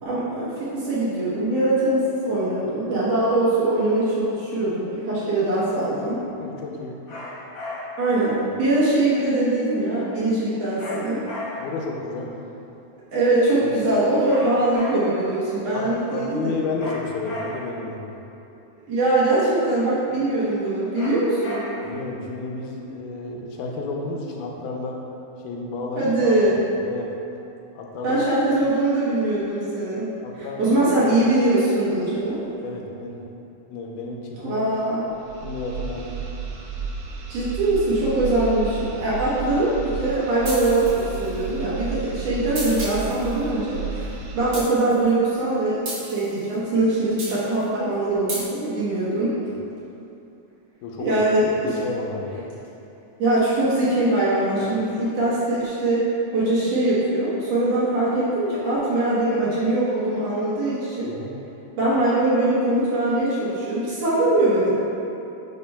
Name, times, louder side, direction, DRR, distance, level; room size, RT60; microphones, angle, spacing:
voice 1, 0.0-6.2 8.0-11.2 13.1-16.5 18.9-21.6 26.0-26.6 28.0-30.1 30.4-32.4 34.4-35.1 37.3-44.1 44.4-49.3 51.0-51.8 53.2-56.1 56.3-61.1 61.8-64.7, right 2 dB, 65° right, -9 dB, 1.9 m, -22 dB
voice 2, 6.4-7.0 11.6-12.3 13.6-13.8 15.7-18.1 20.1-20.2 21.8-25.0 25.4-26.4 26.8-27.1 27.8-28.2 30.2-30.9 32.6-33.2 33.7-34.7 35.4-36.2 50.8-51.2 51.5-52.5 61.1-61.4, left 3 dB, 90° left, -1 dB, 2.2 m, -32 dB
sound 1, 7.1-8.1 10.8-11.9 14.2-15.3 16.8-17.9 20.9-22.0, left 1 dB, 60° left, 1.9 m, -35 dB
sound 2, 35.1-44.7, right 5 dB, 80° right, 1.4 m, -33 dB
sound 3, 40.4-41.4 42.6-43.3 44.5-45.1 45.9-46.5 47.2-47.6 48.3-48.4, right 2 dB, 50° right, 1.5 m, -33 dB
9.7 x 4.4 x 2.2 m, 2.8 s
omnidirectional pair, 3.6 m